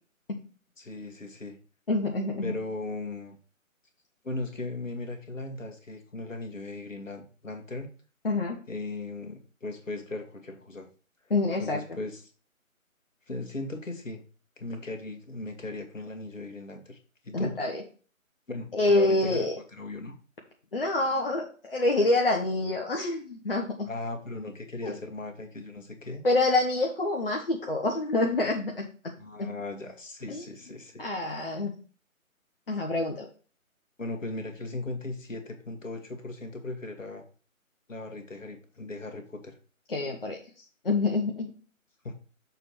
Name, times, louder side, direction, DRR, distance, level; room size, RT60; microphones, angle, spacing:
voice 1, 0.8-1.6 2.4-3.4 4.2-7.9 8.7-10.9 11.6-12.2 13.3-14.2 14.6-17.0 17.2-17.6 18.5-20.2 23.9-26.2 29.2-31.0 34.0-37.2 37.9-39.6 42.0-42.1, left 2 dB, 65° left, 5 dB, 1.7 m, -37 dB
voice 2, 1.9-2.5 8.2-8.6 11.3-11.8 17.3-17.8 18.7-19.5 20.7-23.7 24.8-25.0 26.2-28.9 29.4-29.5 30.3-30.4 31.0-31.7 32.7-33.3 39.9-40.4 40.8-41.5, left 2 dB, 45° left, 1 dB, 0.9 m, -26 dB
6.7 x 3.2 x 5.9 m, 0.38 s
figure-of-eight pair, 150°, 42 cm